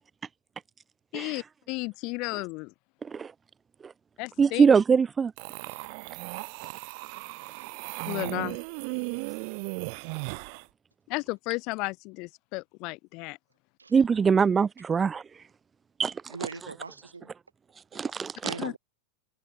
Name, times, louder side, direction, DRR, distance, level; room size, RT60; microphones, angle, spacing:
voice 1, 1.1-2.7 4.2-4.6 8.1-8.6 11.1-13.4 18.6-18.7, left 26 dB, 40° left, 1.6 m, -33 dB
voice 2, 4.4-5.3 13.9-15.2 16.0-16.1 17.9-18.5, right 6 dB, 20° right, 0.3 m, -22 dB
sound 1, 5.4-10.7, right 35 dB, 45° right, 0.9 m, -36 dB
voice 3, 16.3-17.3 17.9-18.8, right 4 dB, 75° right, 3.9 m, -41 dB
figure-of-eight pair, 90°, 0 cm